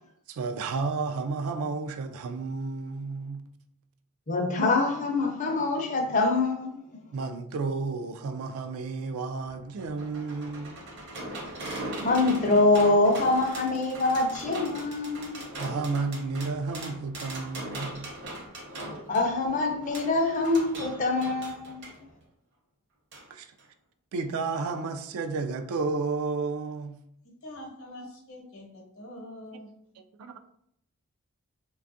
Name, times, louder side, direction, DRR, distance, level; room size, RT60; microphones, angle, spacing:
voice 1, 0.3-3.4 7.1-10.8 15.6-18.1 23.3-23.5 24.1-27.0 30.0-30.4, right 4 dB, 75° right, 0.3 m, -32 dB
voice 2, 4.3-6.8 12.0-15.3 19.1-21.8, left 2 dB, 35° left, 0.5 m, -24 dB
sound 1, 9.5-22.0 23.1-23.2 23.6-23.7, right 1 dB, 50° right, 0.7 m, -40 dB
voice 3, 27.4-29.7, left 1 dB, 65° left, 0.8 m, -44 dB
3.3 x 2.3 x 2.6 m
head